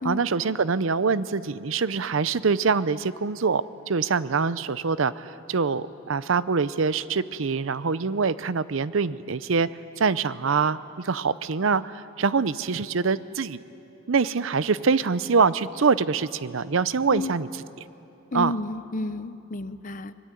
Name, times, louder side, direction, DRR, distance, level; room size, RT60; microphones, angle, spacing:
voice 1, 0.0-9.7 10.0-13.6 14.1-17.5 18.3-18.5, right 5 dB, 70° right, 16 dB, 0.6 m, -24 dB
voice 2, 18.3-20.1, left 2 dB, 40° left, 13 dB, 0.7 m, -31 dB
24.5 x 20.5 x 9.1 m, 3.0 s
head